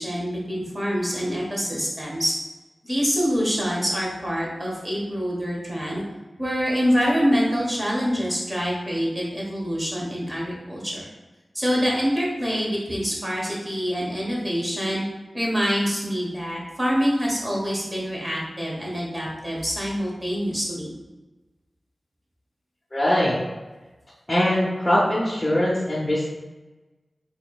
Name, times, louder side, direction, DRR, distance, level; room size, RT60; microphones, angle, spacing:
voice 1, 0.0-2.3 2.8-6.0 6.4-11.1 11.5-15.0 15.3-20.9, equal, 15° right, -4 dB, 1.2 m, -25 dB
voice 2, 22.9-23.4 24.3-26.3, left 1 dB, 20° left, -7 dB, 0.7 m, -21 dB
4.3 x 2.9 x 2.3 m, 1.2 s
wide cardioid pair, 70°, 0 cm